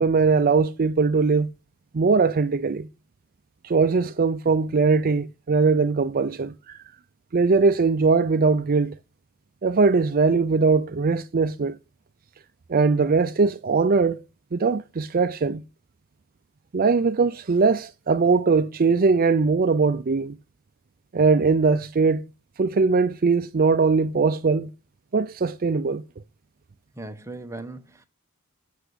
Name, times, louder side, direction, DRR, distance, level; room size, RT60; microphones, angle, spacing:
voice 1, 0.0-1.5 1.9-2.9 3.6-6.8 7.3-9.0 9.6-11.8 12.7-14.2 14.5-15.6 16.7-20.4 21.1-22.2 22.6-24.7 25.1-26.0, right 4 dB, 40° right, 0.5 m, -21 dB
voice 2, 26.9-28.0, right 2 dB, 15° right, 1.1 m, -38 dB
8.1 x 6.7 x 8.0 m
head